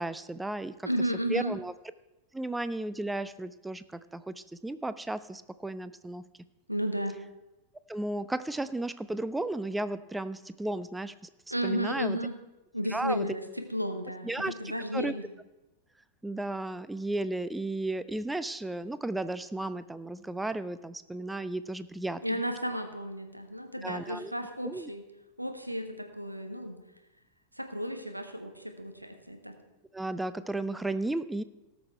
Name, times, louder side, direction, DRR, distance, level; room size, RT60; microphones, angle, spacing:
voice 1, 0.0-0.9 1.3-1.7 2.3-6.2 7.9-11.1 11.6-12.2 12.9-13.3 14.2-15.1 16.2-22.4 23.8-24.3 24.6-24.9 29.9-31.4, right 2 dB, 5° right, 14 dB, 0.4 m, -34 dB
voice 2, 0.8-1.5 6.7-7.2 11.5-12.3 12.7-13.4 13.7-14.3 14.6-15.3 22.2-25.0 25.4-26.8 27.6-29.5, equal, 90° right, 6 dB, 1.1 m, -33 dB
18.0 x 6.2 x 4.5 m, 0.99 s
figure-of-eight pair, 90°, 0 cm